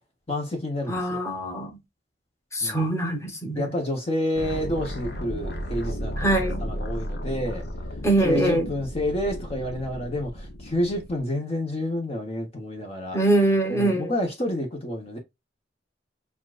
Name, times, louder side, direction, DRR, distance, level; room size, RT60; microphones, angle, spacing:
voice 1, 0.3-1.2 2.6-2.8 3.5-7.6 8.2-13.2 13.7-15.2, left 1 dB, 35° left, 1.2 m, -29 dB
voice 2, 0.9-1.8 2.5-3.8 6.2-6.6 8.0-8.7 13.1-14.1, right 1 dB, 15° left, 1.3 m, -23 dB
sound 1, 4.3-11.2, equal, 60° left, 0.9 m, -34 dB
7.0 x 2.5 x 2.5 m
head